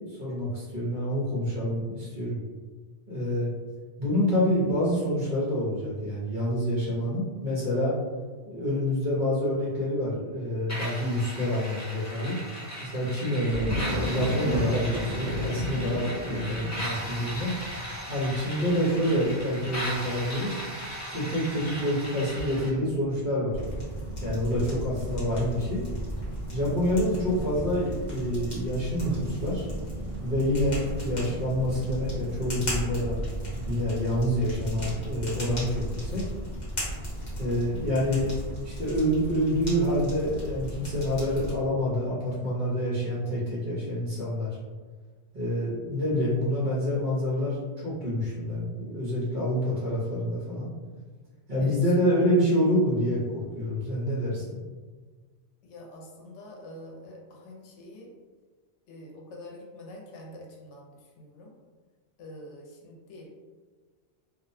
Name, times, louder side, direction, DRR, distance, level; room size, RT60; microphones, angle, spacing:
voice 1, 0.2-2.4 3.1-3.5 4.0-7.9 8.5-12.4 12.8-17.5 18.1-20.6 21.1-23.6 24.2-25.8 26.5-29.7 30.2-33.2 33.7-36.2 37.4-38.3 38.6-44.6 45.3-50.7 51.5-54.6, equal, 50° right, -7 dB, 0.8 m, -27 dB
sound 1, 10.7-22.7, equal, 25° left, 0.4 m, -37 dB
sound 2, 13.5-23.1 23.5-24.1, equal, 80° right, 0.9 m, -34 dB
sound 3, 23.5-41.6, right 1 dB, 40° left, 0.9 m, -35 dB
voice 2, 51.6-52.3 55.6-58.1 58.9-61.5 62.2-63.3, left 1 dB, 80° left, -1 dB, 0.9 m, -46 dB
2.4 x 2.1 x 2.5 m, 1.4 s
omnidirectional pair, 1.2 m